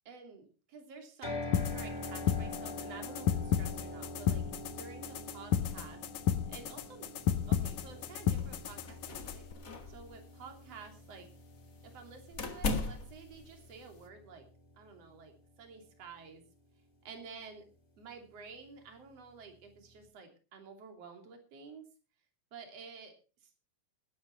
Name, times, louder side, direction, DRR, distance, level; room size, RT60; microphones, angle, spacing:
voice 1, 0.1-4.4 4.7-6.0 6.5-7.1 7.5-9.4 9.9-11.3 11.8-14.5 14.8-16.4 17.0-17.6 18.0-21.8 22.5-23.1 23.4-23.5, right 5 dB, 55° right, 4 dB, 3.9 m, -51 dB
sound 1, 1.2-15.3, left 1 dB, 15° left, 3.2 m, -46 dB
sound 2, 1.5-9.5, left 9 dB, 75° left, 2.3 m, -33 dB
sound 3, 7.0-14.1, left 3 dB, 30° left, 1.8 m, -41 dB
20.0 x 9.4 x 4.5 m, 0.34 s
omnidirectional pair, 3.5 m